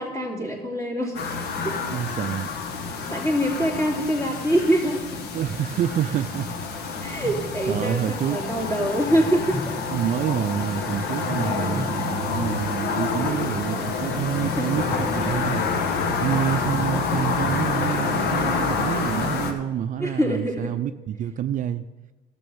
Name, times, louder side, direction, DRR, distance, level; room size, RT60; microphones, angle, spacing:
voice 1, 0.0-1.3 1.6-1.7 2.9-5.2 7.0-9.7 14.6-14.7 20.0-20.7, equal, 20° left, 3.0 m, -24 dB
sound 1, 1.1-19.5, left 4 dB, 75° left, 1.3 m, -28 dB
voice 2, 1.9-2.5 5.3-6.5 7.0-7.2 7.7-8.4 9.9-15.6 16.2-21.8, right 10 dB, 50° right, 0.4 m, -27 dB
sound 2, 6.6-6.7 7.2-8.4 9.1-10.5 10.9-13.2 13.7-14.0 14.7-15.8 16.6-17.0, right 1 dB, ahead, 2.3 m, -36 dB
12.5 x 6.1 x 7.1 m
cardioid pair, 110°, 17 cm